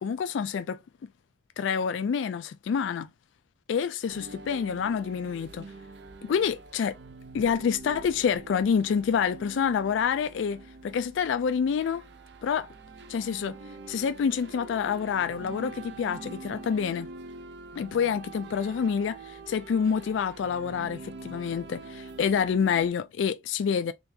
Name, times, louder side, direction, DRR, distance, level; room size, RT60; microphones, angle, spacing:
voice 1, 0.0-0.8 1.6-3.1 3.7-5.7 6.2-6.9 7.3-12.0 12.4-12.7 13.1-13.6 13.9-17.1 17.8-23.9, left 7 dB, 75° left, 0.3 m, -27 dB
sound 1, 4.1-22.9, right 3 dB, 60° right, 0.5 m, -45 dB
3.8 x 3.4 x 2.7 m
head